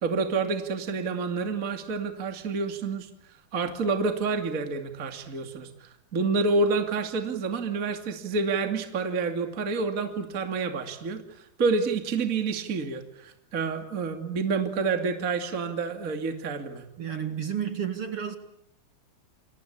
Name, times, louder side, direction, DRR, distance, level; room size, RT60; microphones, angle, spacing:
voice 1, 0.0-3.1 3.5-11.2 11.6-16.8, right 4 dB, 25° right, 6 dB, 2.3 m, -28 dB
voice 2, 17.0-18.4, right 8 dB, 45° right, 7 dB, 2.2 m, -31 dB
29.0 x 23.0 x 8.7 m, 0.76 s
omnidirectional pair, 4.3 m